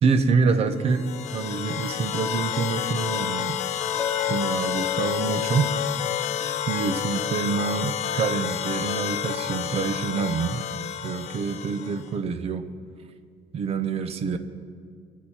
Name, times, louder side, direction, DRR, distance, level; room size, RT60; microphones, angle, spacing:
voice 1, 0.0-3.6 4.2-5.7 6.7-10.6 11.0-12.6 13.5-14.4, right 5 dB, 45° right, 10 dB, 0.7 m, -26 dB
sound 1, 0.8-12.1, left 9 dB, 50° left, 0.5 m, -30 dB
Chink clink, 4.0-8.2, left 12 dB, 20° left, 0.8 m, -34 dB
21.5 x 7.3 x 4.4 m, 2.1 s
cardioid pair, 170°, 15 cm